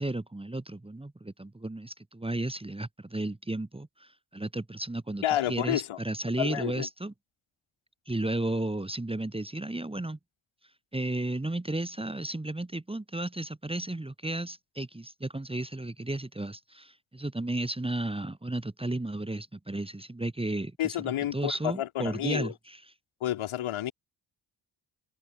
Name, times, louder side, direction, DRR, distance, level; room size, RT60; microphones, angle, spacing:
voice 1, 0.0-7.1 8.1-10.2 10.9-22.8, right 2 dB, 10° right, 1.2 m, -33 dB
voice 2, 5.2-6.0 6.4-6.9 20.8-22.5 23.2-23.9, left 12 dB, 80° left, 1.4 m, -30 dB
supercardioid pair, 45°, 48 cm